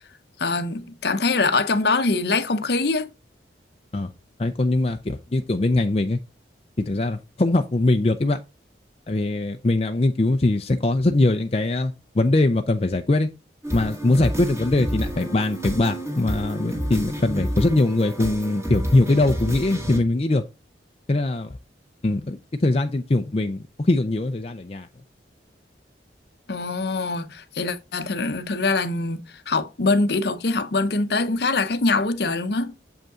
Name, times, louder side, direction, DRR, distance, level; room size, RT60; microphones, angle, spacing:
voice 1, 0.4-3.1 26.5-29.2 29.5-32.7, left 3 dB, 60° left, 0.8 m, -23 dB
voice 2, 4.4-6.2 6.8-8.4 9.1-13.3 13.7-20.4 21.1-21.6 22.0-24.9, left 2 dB, 30° left, 0.5 m, -22 dB
sound 1, 13.6-20.0, equal, 15° right, 1.9 m, -30 dB
7.4 x 5.4 x 3.7 m
head